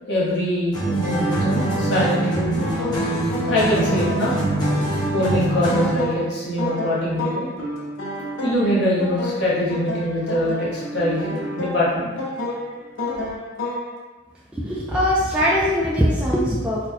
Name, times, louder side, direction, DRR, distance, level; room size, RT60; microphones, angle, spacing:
voice 1, 0.1-2.5 3.5-4.4 5.1-7.5 8.4-12.1, left 1 dB, 60° left, -7 dB, 1.0 m, -23 dB
sound 1, 0.7-6.1, right 1 dB, 20° left, 0.8 m, -23 dB
sound 2, 1.2-14.0, left 1 dB, 80° left, 0.7 m, -31 dB
voice 2, 14.5-16.9, equal, 5° right, -7 dB, 0.3 m, -21 dB
4.1 x 2.2 x 2.8 m, 1.2 s
head